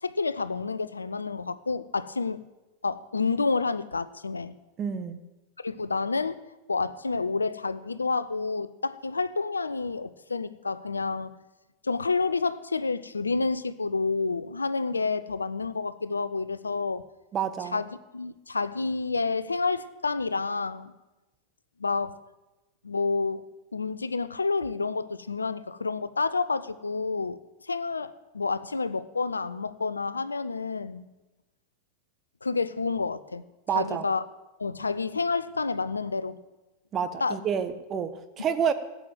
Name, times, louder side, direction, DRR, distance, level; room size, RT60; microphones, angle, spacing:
voice 1, 0.0-2.4 2.8-4.5 5.6-6.4 6.7-11.3 11.8-17.0 17.7-20.9 21.8-22.2 22.8-23.4 23.7-31.1 32.4-33.4 33.7-34.2 34.6-36.4 37.2-37.4, left 4 dB, 80° left, 15 dB, 0.7 m, -29 dB
voice 2, 4.8-5.2 17.3-17.8 33.7-34.0 36.9-38.7, right 7 dB, 30° right, 10 dB, 1.3 m, -29 dB
14.5 x 7.9 x 9.0 m, 1.1 s
figure-of-eight pair, 90°, 0 cm